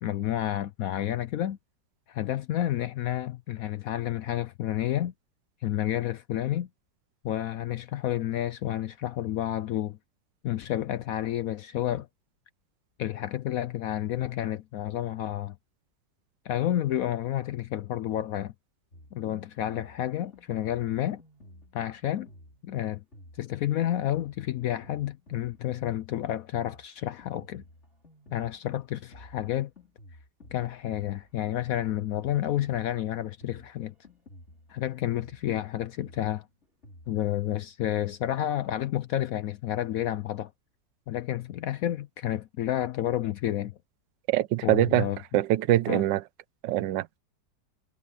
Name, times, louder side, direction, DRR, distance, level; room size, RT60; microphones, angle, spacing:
voice 1, 0.0-1.6 2.1-5.1 5.6-6.7 7.2-10.0 10.4-12.1 13.0-15.6 16.4-18.5 19.1-21.2 21.7-22.3 22.6-23.0 23.4-27.6 28.3-29.7 30.5-33.9 34.7-36.5 37.1-40.5 41.1-43.7 44.6-45.2 45.9-46.0, left 12 dB, 70° left, 0.8 m, -30 dB
Drum kit, 18.9-37.1, left 1 dB, 35° left, 4.4 m, -53 dB
voice 2, 44.3-45.1 45.3-46.2 46.6-47.2, right 14 dB, 85° right, 1.3 m, -24 dB
omnidirectional pair, 1.9 m